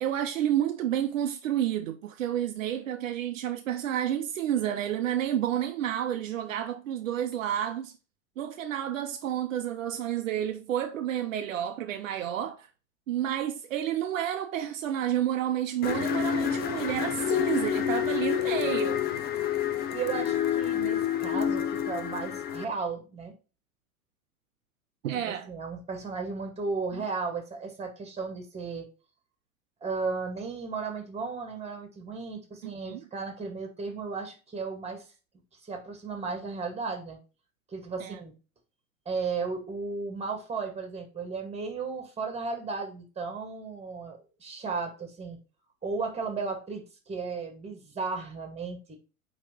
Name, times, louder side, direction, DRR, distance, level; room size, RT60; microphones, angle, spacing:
voice 1, 0.0-7.9 8.4-12.7 13.1-19.1 25.0-25.5 26.9-27.0 32.6-33.0 38.0-38.2, right 11 dB, 65° right, 0.8 m, -30 dB
sound 1, 15.8-22.6, left 10 dB, 25° left, 0.5 m, -28 dB
voice 2, 19.9-23.3 25.5-28.9 29.8-35.0 35.5-37.2 37.7-38.3 39.1-45.4 45.8-49.0, right 4 dB, 15° right, 2.1 m, -35 dB
9.0 x 3.3 x 4.4 m
figure-of-eight pair, 90°, 42 cm